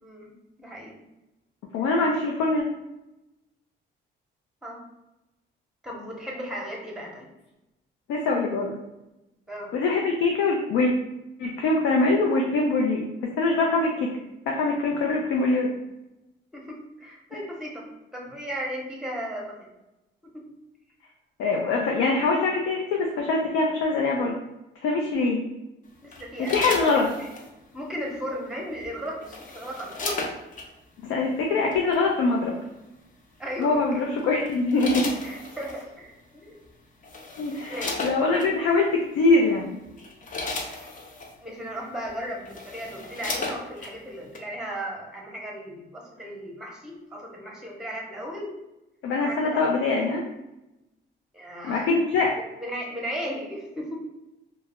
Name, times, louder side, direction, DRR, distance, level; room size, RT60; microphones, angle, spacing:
voice 1, 0.0-1.0 4.6-4.8 5.8-7.3 9.5-9.7 16.5-19.5 26.0-27.3 27.7-30.3 33.4-34.0 35.2-36.6 37.7-38.1 41.4-48.5 49.2-50.1 51.3-51.9 52.4-54.0, equal, 5° right, -1 dB, 0.8 m, -36 dB
voice 2, 1.7-2.6 8.1-8.8 9.7-10.9 11.4-13.1 13.4-14.1 14.5-15.7 21.4-24.3 24.8-25.4 26.5-27.1 31.0-32.6 33.6-35.2 37.4-39.8 49.0-50.2 51.6-52.3, left 3 dB, 90° left, 0 dB, 0.4 m, -23 dB
sound 1, 26.1-27.5 28.8-30.7 31.7-32.0 33.6-33.9 34.4-35.8 36.6-36.7 37.0-38.5 39.2-39.4 39.8-41.3 42.0-42.1 42.4-43.9 44.3-44.4, left 3 dB, 40° left, 0.5 m, -35 dB
2.2 x 2.0 x 3.4 m, 0.96 s
cardioid pair, 90°, 20 cm